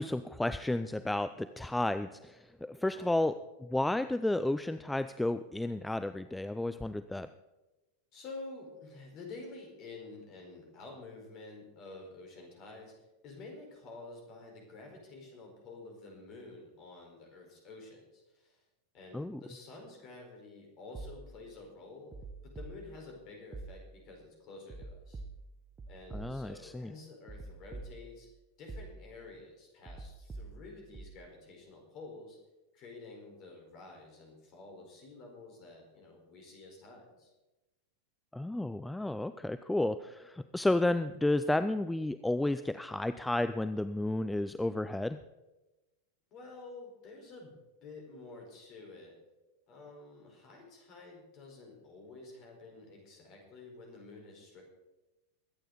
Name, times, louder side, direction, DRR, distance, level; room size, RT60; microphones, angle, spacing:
voice 1, 0.0-3.3 3.7-7.3 19.1-19.4 26.1-26.9 38.3-45.2, left 1 dB, 5° left, 12 dB, 0.4 m, -32 dB
voice 2, 2.9-3.3 8.1-12.9 13.2-18.6 18.9-22.1 22.4-25.2 25.9-28.3 28.6-32.4 32.7-37.3 46.3-47.5 47.8-49.1 49.7-54.6, left 3 dB, 35° left, 1 dB, 4.6 m, -50 dB
sound 1, 20.9-21.6 22.1-23.2 23.5-24.2 24.7-26.7 27.3-28.3 28.7-29.3 29.9-31.3, right 3 dB, 20° right, 1.1 m, -47 dB
22.0 x 9.1 x 4.1 m, 1.1 s
figure-of-eight pair, 90°, 0 cm